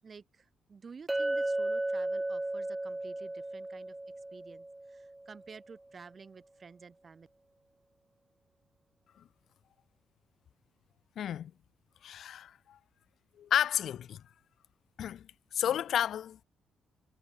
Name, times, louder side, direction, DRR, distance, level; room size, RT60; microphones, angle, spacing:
voice 1, 0.0-4.0 4.3-7.3, right 5 dB, 40° right, 6.6 m, -52 dB
Chink clink, 1.1-5.3, right 2 dB, 15° right, 0.6 m, -34 dB
voice 2, 11.2-11.5 12.0-12.8 13.4-14.2 15.0-16.4, left 10 dB, 65° left, 4.1 m, -32 dB
cardioid pair, 90°, 0 cm